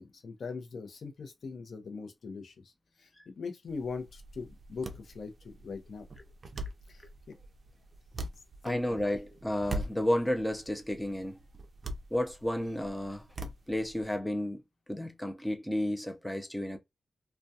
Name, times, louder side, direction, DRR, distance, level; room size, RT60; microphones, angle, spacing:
voice 1, 0.0-2.7 3.0-6.1 6.9-7.4 8.7-9.0, left 4 dB, 70° left, 0.6 m, -41 dB
sound 1, 3.7-14.2, right 1 dB, 50° right, 0.4 m, -43 dB
voice 2, 8.6-11.4 12.1-13.2 13.7-14.6 14.9-16.8, left 1 dB, 5° left, 0.5 m, -32 dB
2.3 x 2.2 x 2.6 m
wide cardioid pair, 95°, 0 cm